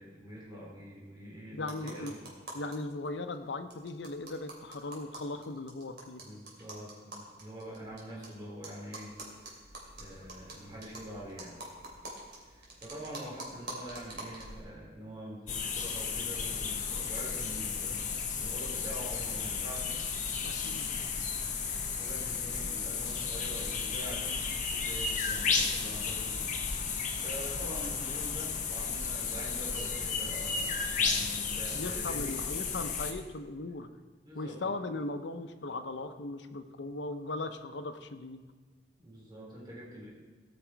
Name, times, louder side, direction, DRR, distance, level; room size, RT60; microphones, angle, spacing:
voice 1, 0.0-2.3 6.2-9.5 10.0-11.6 12.4-19.9 21.9-24.4 24.7-26.4 27.2-32.4 33.7-33.8 34.2-34.7 39.0-40.1, equal, 25° right, -5 dB, 3.2 m, -45 dB
voice 2, 1.5-2.2 2.5-6.2 20.4-20.9 31.7-33.9 34.3-38.4, left 2 dB, 90° left, 9 dB, 0.8 m, -38 dB
sound 1, 1.6-2.8 3.1-3.2 3.3-3.4 3.7-8.3 8.6-14.6, right 2 dB, 65° right, 3.0 m, -46 dB
sound 2, 15.5-33.1, left 5 dB, 45° left, 1.0 m, -33 dB
18.0 x 6.0 x 4.6 m, 1.3 s
head